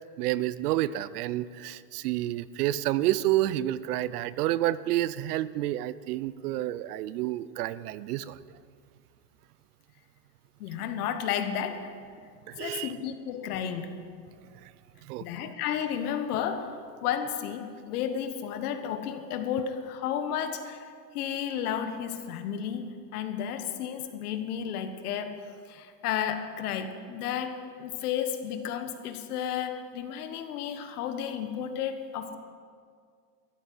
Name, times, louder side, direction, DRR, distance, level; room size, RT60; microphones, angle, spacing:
voice 1, 0.2-8.4 12.5-12.9 15.1-15.2, right 14 dB, 70° right, 18 dB, 0.6 m, -29 dB
voice 2, 10.6-11.9 12.5-14.0 15.2-20.9 21.1-32.4, left 8 dB, 70° left, 8 dB, 1.4 m, -32 dB
14.0 x 8.3 x 7.9 m, 2.1 s
supercardioid pair, 150°, 47 cm